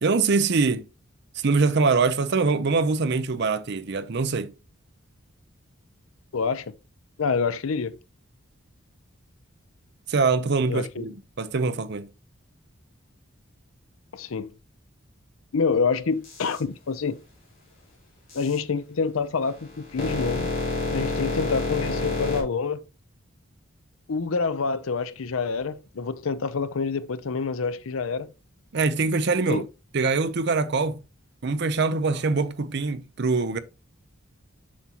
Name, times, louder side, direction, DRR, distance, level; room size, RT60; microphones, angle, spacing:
voice 1, 0.0-0.9 1.4-4.5 10.1-12.1 28.7-29.7 29.9-31.0 31.4-33.6, right 4 dB, 55° right, 0.6 m, -23 dB
voice 2, 6.3-6.7 7.2-8.0 10.7-11.1 14.1-14.5 15.5-17.2 18.3-20.5 20.9-22.8 24.1-28.3 29.5-29.6, left 5 dB, 80° left, 0.6 m, -27 dB
sound 1, 16.2-16.6 18.3-18.6 19.4-22.4, left 3 dB, 45° left, 3.5 m, -28 dB
7.2 x 6.1 x 2.9 m
head